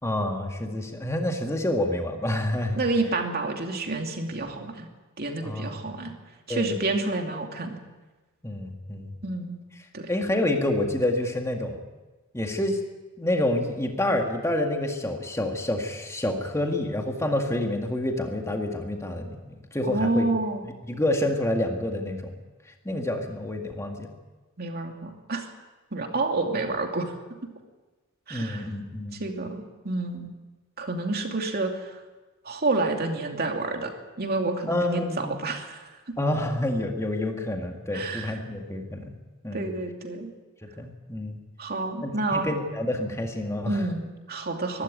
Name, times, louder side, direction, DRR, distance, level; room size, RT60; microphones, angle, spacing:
voice 1, 0.0-2.8 5.4-5.9 6.5-6.7 8.4-9.1 10.1-11.8 12.3-12.8 13.2-20.3 20.9-22.3 22.9-24.1 28.3-29.2 34.7-35.4 36.2-39.1 39.4-39.7 40.6-41.4 42.0-43.8, left 1 dB, 15° left, 3 dB, 2.0 m, -28 dB
voice 2, 2.8-4.9 5.2-6.1 6.5-7.8 9.2-9.6 9.9-10.1 19.9-20.6 24.6-25.5 25.9-27.1 28.3-28.7 29.1-30.3 30.8-32.0 32.4-33.9 34.2-36.2 37.9-38.4 39.5-40.3 41.6-42.5 43.7-44.8, right 2 dB, 50° right, 3 dB, 2.7 m, -29 dB
22.5 x 13.0 x 9.1 m, 1.2 s
head